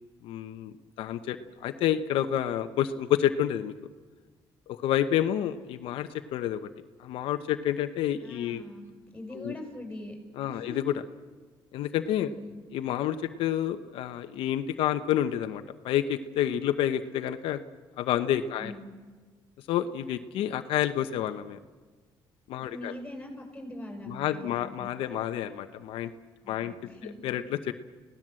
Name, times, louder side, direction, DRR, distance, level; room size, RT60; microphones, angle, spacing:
voice 1, 0.2-3.7 4.7-6.7 7.0-8.6 9.3-9.6 10.4-10.9 11.7-12.3 12.7-17.6 18.0-18.7 19.7-21.6 22.5-22.9 24.1-26.1 26.5-26.7 27.2-27.7, left 11 dB, 80° left, 8 dB, 0.9 m, -29 dB
voice 2, 8.2-8.9 9.1-10.2 10.5-10.8 12.3-12.6 18.6-18.9 22.5-24.9 26.4-27.2, left 1 dB, 10° left, 2 dB, 7.7 m, -42 dB
29.0 x 17.5 x 7.7 m, 1.4 s
cardioid pair, 90°, 9 cm